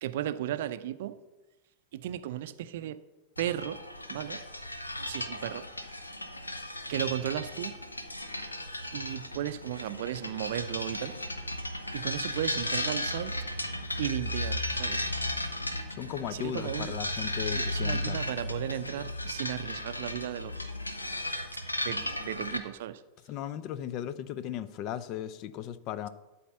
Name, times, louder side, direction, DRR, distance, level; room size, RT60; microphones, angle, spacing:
voice 1, 0.0-1.2 1.9-3.0 3.4-3.8 4.1-4.4 5.1-6.1 6.9-7.8 8.9-11.1 11.9-13.3 14.0-15.1 16.3-16.9 17.5-20.7 21.8-23.0, right 11 dB, 55° right, 13 dB, 0.5 m, -35 dB
sound 1, 3.4-22.6, left 1 dB, 80° left, 0.8 m, -35 dB
voice 2, 16.0-18.2 23.3-26.1, left 10 dB, 40° left, 15 dB, 0.5 m, -36 dB
12.5 x 4.2 x 6.8 m, 1.1 s
figure-of-eight pair, 90°, 0 cm